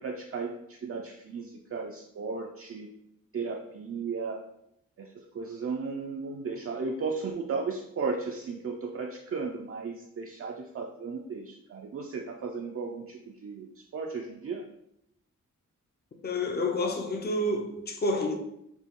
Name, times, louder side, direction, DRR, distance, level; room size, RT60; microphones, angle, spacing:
voice 1, 0.0-2.9 3.3-4.4 5.0-5.1 5.3-13.7 13.9-14.6, right 4 dB, 45° right, 0.4 m, -35 dB
voice 2, 16.2-18.4, left 1 dB, 30° left, 0.5 m, -29 dB
6.0 x 2.2 x 3.6 m
wide cardioid pair, 140°, 32 cm